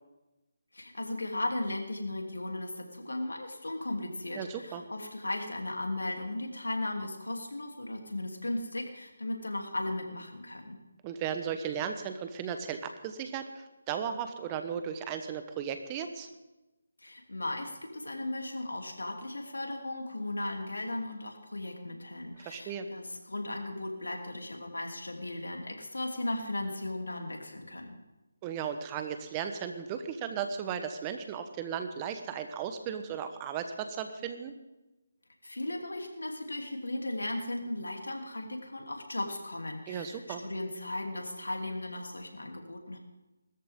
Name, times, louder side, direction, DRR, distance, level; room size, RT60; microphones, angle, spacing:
voice 1, 0.7-10.8 17.0-28.0 35.4-43.0, left 1 dB, 85° left, 2 dB, 3.1 m, -36 dB
voice 2, 4.3-4.8 11.0-16.3 22.4-22.9 28.4-34.5 39.9-40.4, right 8 dB, 20° right, 8 dB, 1.0 m, -36 dB
20.5 x 13.5 x 3.7 m, 1.0 s
figure-of-eight pair, 155°, 0 cm